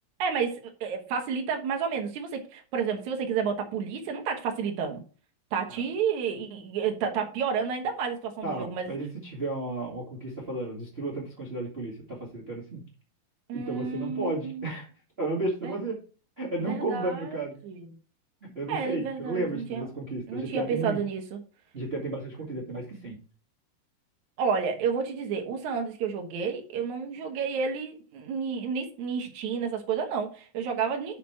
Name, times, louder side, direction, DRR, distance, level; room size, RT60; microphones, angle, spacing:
voice 1, 0.2-5.0 5.5-8.9 13.5-14.6 15.6-15.7 16.6-17.9 18.7-19.9 20.3-21.4 24.4-31.2, right 6 dB, 80° right, 3 dB, 1.6 m, -30 dB
voice 2, 8.4-12.8 13.5-14.9 15.2-16.0 16.4-17.5 18.4-21.0 21.7-23.2, right 2 dB, 40° right, -2 dB, 0.8 m, -33 dB
5.9 x 5.9 x 5.8 m, 0.38 s
omnidirectional pair, 5.2 m